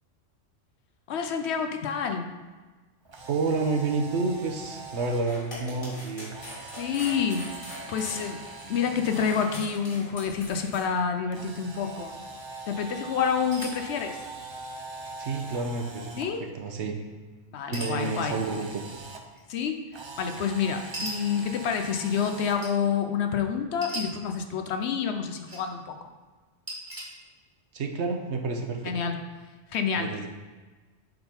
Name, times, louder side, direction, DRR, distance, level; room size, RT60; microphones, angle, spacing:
voice 1, 1.1-2.3 6.7-7.5 7.9-12.1 12.7-14.2 16.2-16.4 17.5-18.4 19.5-19.8 20.2-26.0 28.8-29.2 29.7-30.3, left 6 dB, 65° left, 6 dB, 0.8 m, -28 dB
Camera, 3.0-5.2 6.3-9.6 11.3-16.2 17.9-19.2 19.9-22.6, right 3 dB, 45° right, 0.3 m, -42 dB
voice 2, 3.3-6.3 15.2-16.2 16.5-16.9 17.7-19.0 27.7-28.9 30.0-30.3, right 3 dB, 65° right, 4 dB, 1.0 m, -29 dB
sound 1, 5.1-10.8, left 1 dB, 45° left, 2.4 m, -42 dB
sound 2, 13.5-13.8 14.9-15.0 15.3-15.6 17.7-18.1 19.3-19.4 20.9-21.1 22.6-22.7 23.8-24.0 25.1-25.6 26.7-27.0, right 1 dB, 15° right, 1.4 m, -37 dB
7.7 x 3.7 x 4.3 m, 1.3 s
omnidirectional pair, 1.3 m